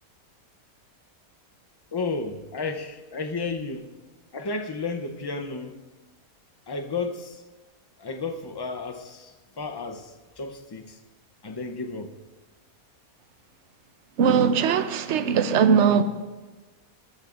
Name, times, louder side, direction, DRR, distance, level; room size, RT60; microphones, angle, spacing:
voice 1, 1.9-3.9 4.3-5.8 6.7-7.4 8.0-11.0 11.4-12.1, left 4 dB, 25° left, 0.5 m, -32 dB
voice 2, 14.2-16.0, right 6 dB, 60° right, 1.0 m, -20 dB
20.5 x 13.5 x 2.6 m
omnidirectional pair, 1.5 m